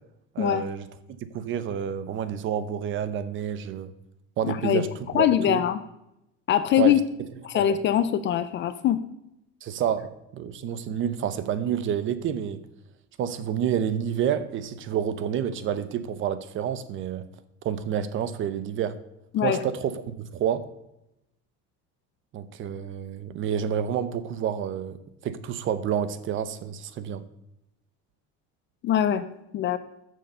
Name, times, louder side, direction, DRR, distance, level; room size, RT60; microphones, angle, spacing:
voice 1, 0.3-0.8 1.3-3.9 4.4-4.9 5.1-5.6 6.8-7.0 7.5-7.6 9.6-12.6 13.2-17.3 17.6-19.0 19.4-20.7 22.3-25.0 25.2-27.2, right 9 dB, 45° right, 13 dB, 0.8 m, -29 dB
voice 2, 4.4-4.9 5.1-5.8 6.5-7.0 7.4-9.0 19.3-19.6 28.8-29.2 29.5-29.8, left 10 dB, 40° left, 12 dB, 0.6 m, -22 dB
13.5 x 6.6 x 5.5 m, 0.86 s
cardioid pair, 160°, 29 cm